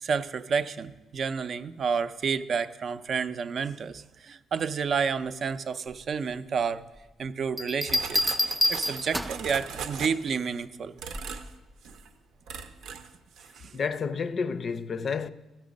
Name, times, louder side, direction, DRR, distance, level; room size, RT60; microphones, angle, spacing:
voice 1, 0.0-6.9 7.2-8.4 8.7-10.9 13.6-13.7, right 6 dB, 55° right, 0.5 m, -30 dB
sound 1, 7.6-9.5 11.1-11.5, left 1 dB, ahead, 0.5 m, -27 dB
sound 2, 7.9-10.5 11.0-11.5 11.8-12.1 12.5-13.1 13.4-13.6, right 6 dB, 85° right, 0.7 m, -39 dB
voice 2, 13.7-15.3, left 5 dB, 50° left, 0.5 m, -30 dB
15.0 x 6.1 x 5.1 m
cardioid pair, 90°, 0 cm